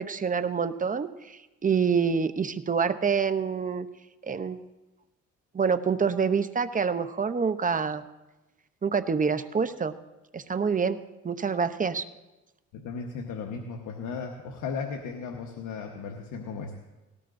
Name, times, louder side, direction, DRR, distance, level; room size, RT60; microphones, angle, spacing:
voice 1, 0.0-3.9 4.2-4.6 5.5-8.0 8.8-10.0 10.3-11.0 11.2-12.0, right 6 dB, 25° right, 11 dB, 0.7 m, -26 dB
voice 2, 12.7-16.8, left 5 dB, 85° left, 2 dB, 1.2 m, -36 dB
18.5 x 17.5 x 2.6 m, 1.1 s
cardioid pair, 90°, 30 cm